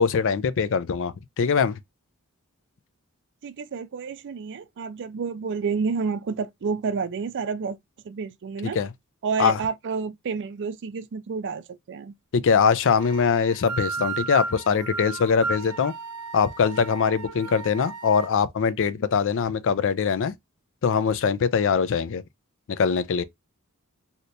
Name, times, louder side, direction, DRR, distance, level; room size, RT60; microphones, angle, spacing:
voice 1, 0.0-1.8 8.7-8.9 9.4-9.6 12.3-15.9 16.3-20.3 20.8-22.2 22.7-23.2, left 6 dB, 60° left, 0.4 m, -22 dB
voice 2, 3.4-7.8 8.0-8.8 9.2-12.1, right 5 dB, 55° right, 0.4 m, -29 dB
sound 1, 13.0-18.3, right 4 dB, 85° right, 0.7 m, -34 dB
2.8 x 2.7 x 3.2 m
head